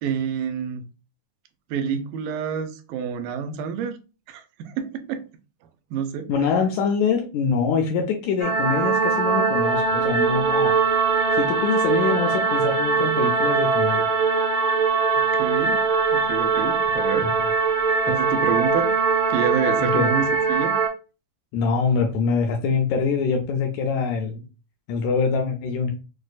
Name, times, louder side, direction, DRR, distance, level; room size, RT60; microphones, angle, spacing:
voice 1, 0.0-0.8 1.7-4.0 4.3-5.2 5.9-6.3 15.4-15.8 16.1-17.3 18.1-18.9 19.3-20.8, right 7 dB, 90° right, 2.2 m, -28 dB
voice 2, 6.3-10.7 11.3-14.1 17.2-17.3 18.1-18.2 19.8-20.1 21.5-24.4 24.9-25.9, left 5 dB, 80° left, 1.7 m, -24 dB
sound 1, 8.4-20.9, right 5 dB, 65° right, 1.0 m, -21 dB
6.1 x 2.2 x 2.4 m
omnidirectional pair, 3.7 m